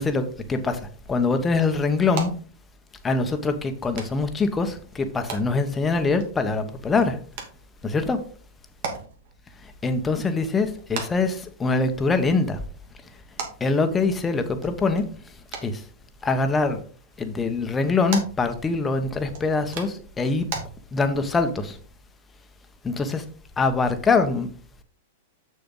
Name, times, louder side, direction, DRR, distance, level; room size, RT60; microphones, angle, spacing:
voice 1, 0.0-2.3 3.0-7.2 7.8-8.2 9.8-12.6 13.6-15.0 15.6-15.8 16.2-16.8 17.2-20.5 20.9-21.8 22.8-23.2 23.6-24.5, left 3 dB, 15° left, 1.1 m, -23 dB
sound 1, 0.8-20.6, right 5 dB, 60° right, 2.6 m, -41 dB
6.8 x 6.7 x 3.9 m
hypercardioid pair, 130°, 0 cm